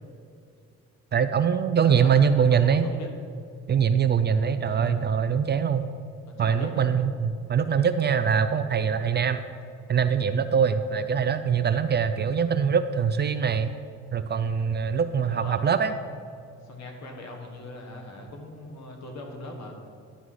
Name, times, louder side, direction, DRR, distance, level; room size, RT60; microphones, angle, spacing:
voice 1, 1.1-2.9 3.7-5.9 6.4-9.4 9.9-13.7 14.1-15.9, right 7 dB, 35° right, 10 dB, 0.4 m, -23 dB
voice 2, 1.7-3.1 4.7-5.0 6.3-6.9 15.2-15.6 16.6-19.7, left 2 dB, 65° left, 2 dB, 1.5 m, -41 dB
11.0 x 3.8 x 4.8 m, 2.4 s
cardioid pair, 90°, 30 cm